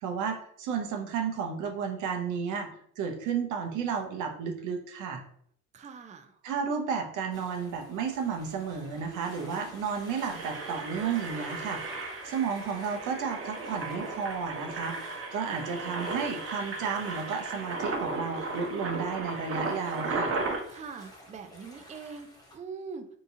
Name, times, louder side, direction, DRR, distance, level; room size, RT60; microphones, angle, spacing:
voice 1, 0.0-5.2 6.4-20.4, right 6 dB, 85° right, 4 dB, 0.6 m, -33 dB
voice 2, 5.7-6.4 20.7-23.1, right 5 dB, 25° right, 7 dB, 0.4 m, -43 dB
sound 1, 7.3-22.6, left 1 dB, 15° left, 0.9 m, -51 dB
Engine, 8.9-9.0 9.2-9.4 9.9-20.6, right 3 dB, 45° right, 0.7 m, -35 dB
3.7 x 2.8 x 2.6 m, 0.64 s
cardioid pair, 90°, 30 cm